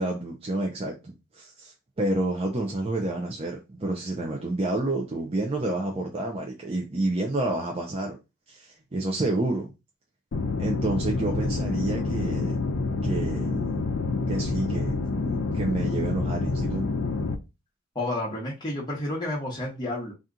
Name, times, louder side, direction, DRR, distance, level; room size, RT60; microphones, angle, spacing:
voice 1, 0.0-8.2 8.5-9.7 10.6-12.5 13.0-13.8 14.3-16.8, right 2 dB, 30° right, 0.5 m, -29 dB
sound 1, 10.3-17.4, left 3 dB, 65° left, 0.5 m, -27 dB
voice 2, 17.9-20.1, left 1 dB, 20° left, 0.9 m, -30 dB
2.8 x 2.4 x 3.7 m
head